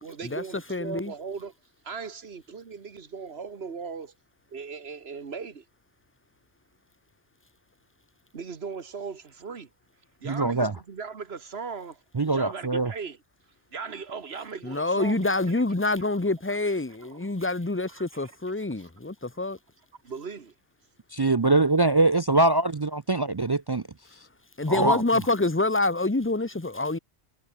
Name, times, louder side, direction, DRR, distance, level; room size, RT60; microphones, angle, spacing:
voice 1, 0.0-1.5 1.8-4.1 4.5-5.6 8.3-9.7 10.2-13.2 13.7-15.6 17.1-17.5 18.0-18.3 18.8-18.9 20.0-20.5, right 5 dB, 70° right, 1.7 m, -38 dB
voice 2, 0.7-1.1 14.6-19.6 24.6-27.0, left 2 dB, 10° left, 1.0 m, -26 dB
voice 3, 10.2-10.7 12.1-12.9 21.1-23.8 24.7-25.0, right 2 dB, 35° right, 0.4 m, -23 dB
omnidirectional pair, 1.1 m